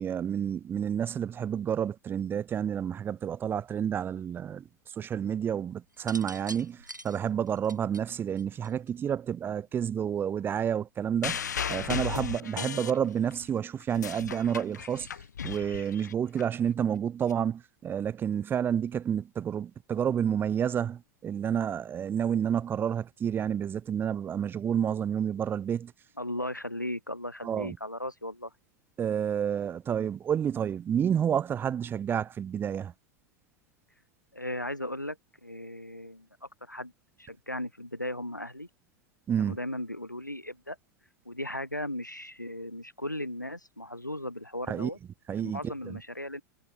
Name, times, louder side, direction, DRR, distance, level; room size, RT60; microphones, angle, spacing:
voice 1, 0.0-4.7 5.0-11.4 11.7-15.1 15.4-25.9 27.4-27.8 29.0-32.9 39.3-39.6 44.7-44.9 45.3-46.0, right 8 dB, 20° right, 0.9 m, -30 dB
sound 1, 5.9-9.1 10.2-10.5, right 1 dB, 90° right, 5.7 m, -45 dB
sound 2, 11.2-13.4 13.8-16.4 17.3-17.4, left 7 dB, 70° left, 0.8 m, -35 dB
voice 2, 26.2-28.5 34.3-36.9 37.2-38.7 39.4-40.8 41.3-45.0 45.3-46.4, left 1 dB, 90° left, 1.9 m, -37 dB
figure-of-eight pair, 90°, 10 cm